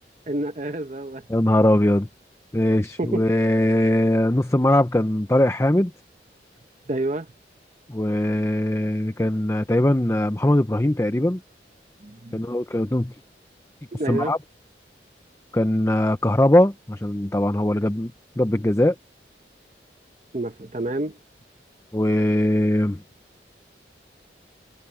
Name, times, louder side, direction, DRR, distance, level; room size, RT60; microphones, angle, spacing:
voice 1, 0.3-1.2 3.0-3.2 6.9-7.3 12.0-12.4 13.9-14.3 20.3-21.2, right 1 dB, 40° right, 0.9 m, -28 dB
voice 2, 1.3-2.1 2.5-5.9 7.9-11.4 12.3-13.1 14.1-14.4 15.5-18.9 21.9-23.0, left 1 dB, 15° left, 0.6 m, -21 dB
head